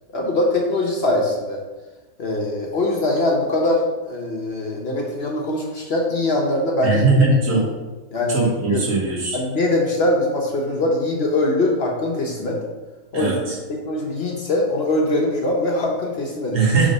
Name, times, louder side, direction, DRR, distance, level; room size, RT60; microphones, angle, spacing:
voice 1, 0.1-1.6 2.2-7.6 8.1-8.4 8.7-8.8 9.3-12.6 13.1-13.3 13.7-16.6, left 2 dB, 50° left, -1 dB, 1.0 m, -22 dB
voice 2, 6.8-7.6 8.3-9.4 13.1-13.4 16.5-16.9, right 3 dB, 60° right, -3 dB, 1.8 m, -19 dB
5.1 x 3.6 x 5.3 m, 1.2 s
omnidirectional pair, 1.5 m